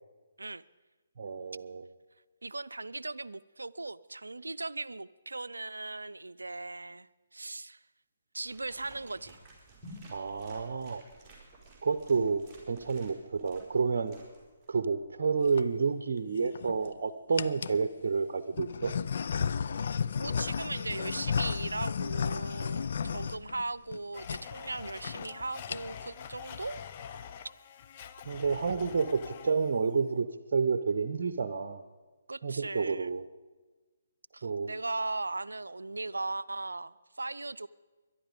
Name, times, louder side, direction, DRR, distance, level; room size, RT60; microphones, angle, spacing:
voice 1, 1.2-1.9 10.1-11.0 11.8-14.2 14.7-18.9 23.0-23.2 28.2-31.8 32.4-33.2 34.4-34.7, right 5 dB, 55° right, 10 dB, 0.8 m, -30 dB
voice 2, 2.4-7.8 8.3-9.4 20.2-26.8 32.3-33.1 34.3-37.7, right 2 dB, 85° right, 16 dB, 0.5 m, -38 dB
sound 1, 8.4-14.7, right 1 dB, 5° right, 5.4 m, -53 dB
sound 2, 15.2-15.6 16.4-16.9 17.4-17.8 18.5-24.0 24.2-24.4 24.7-24.8 25.0-25.3 25.6-26.1, left 6 dB, 55° left, 0.5 m, -33 dB
Domestic sounds home sounds, 24.1-29.8, left 8 dB, 35° left, 0.8 m, -46 dB
21.5 x 11.5 x 5.2 m, 1.3 s
figure-of-eight pair, 140°, 0 cm